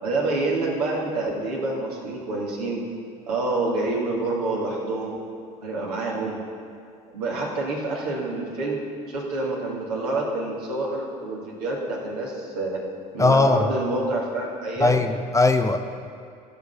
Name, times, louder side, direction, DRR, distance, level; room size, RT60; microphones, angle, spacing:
voice 1, 0.0-2.8 3.3-5.2 5.6-6.4 7.1-8.8 9.1-12.8 13.1-14.9, right 2 dB, 85° right, -3 dB, 2.1 m, -27 dB
voice 2, 13.2-13.7 14.8-15.8, left 3 dB, 15° left, 6 dB, 0.7 m, -19 dB
14.5 x 5.9 x 5.5 m, 2.3 s
hypercardioid pair, 65°, 20 cm